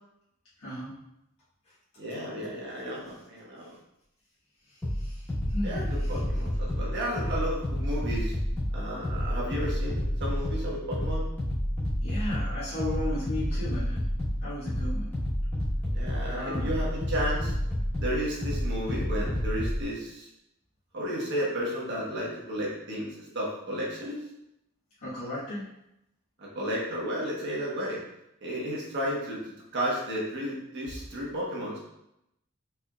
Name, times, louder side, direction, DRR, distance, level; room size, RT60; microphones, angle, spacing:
voice 1, 0.6-0.9 3.0-3.1 5.0-5.2 5.5-6.1 12.0-14.0 14.4-15.1 16.3-16.7 25.0-25.6, left 1 dB, 85° left, -11 dB, 1.4 m, -35 dB
voice 2, 2.0-3.7 5.6-8.3 8.7-11.3 15.9-17.5 18.0-20.3 20.9-24.2 26.4-28.0 28.4-31.8, equal, 55° right, -4 dB, 1.1 m, -33 dB
sound 1, 4.8-19.8, equal, 10° left, 1.2 m, -30 dB
4.5 x 3.4 x 2.3 m, 0.83 s
head